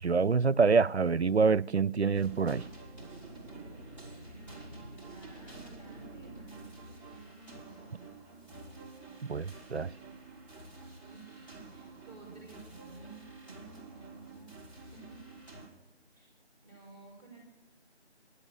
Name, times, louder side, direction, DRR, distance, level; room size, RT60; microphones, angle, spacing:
voice 1, 0.0-2.7 9.2-9.9, right 5 dB, 70° right, 0.5 m, -26 dB
sound 1, 2.1-15.7, right 2 dB, 25° left, 3.6 m, -49 dB
voice 2, 3.3-3.9 4.2-8.1 11.1-15.2 16.1-16.3 16.6-17.4, right 3 dB, 5° left, 5.9 m, -54 dB
16.5 x 11.5 x 6.8 m
figure-of-eight pair, 180°, 34 cm